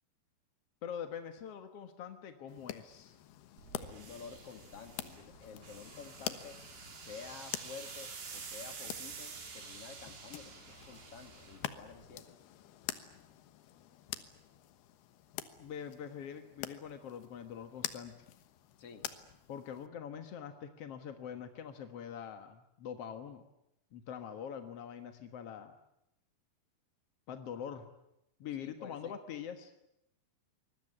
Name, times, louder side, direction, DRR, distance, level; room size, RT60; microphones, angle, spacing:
voice 1, 0.8-3.2 15.6-18.1 19.5-23.4 23.9-25.7 27.3-27.9 28.4-29.7, left 8 dB, 60° left, 7 dB, 1.6 m, -44 dB
sound 1, 2.5-19.9, left 12 dB, 75° left, 3.2 m, -47 dB
sound 2, 3.6-12.2, right 5 dB, 85° right, 6.1 m, -49 dB
voice 2, 3.8-6.6 7.0-12.3 18.8-19.1 28.6-29.2, left 6 dB, 45° left, 7 dB, 2.6 m, -50 dB
25.5 x 21.5 x 9.8 m, 0.84 s
omnidirectional pair, 4.7 m